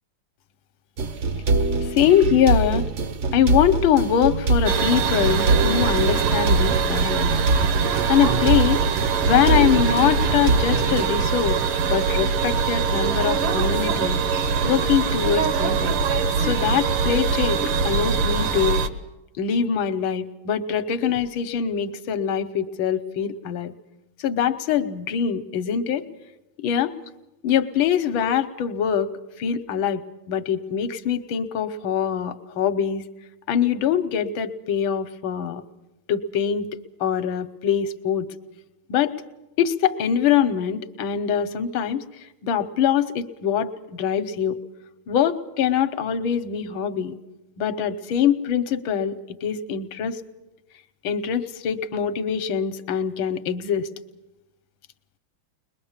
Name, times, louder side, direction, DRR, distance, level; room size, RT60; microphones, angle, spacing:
sound 1, 1.0-11.1, right 3 dB, 55° right, 0.8 m, -24 dB
voice 1, 1.8-2.9 3.3-7.3 8.1-8.8 9.2-11.6 11.9-14.2 14.6-15.9 16.4-18.8 19.4-23.7 24.2-26.0 26.6-26.9 27.4-29.1 29.4-30.0 30.3-33.0 33.5-35.6 36.1-36.7 37.0-38.3 38.9-39.1 39.6-42.0 42.4-44.6 45.1-47.1 47.6-49.1 49.4-50.2 51.0-53.9, left 8 dB, 70° left, 11 dB, 1.6 m, -23 dB
sound 2, 4.6-18.9, right 5 dB, 80° right, 2.0 m, -23 dB
22.0 x 21.0 x 7.3 m, 0.97 s
omnidirectional pair, 2.4 m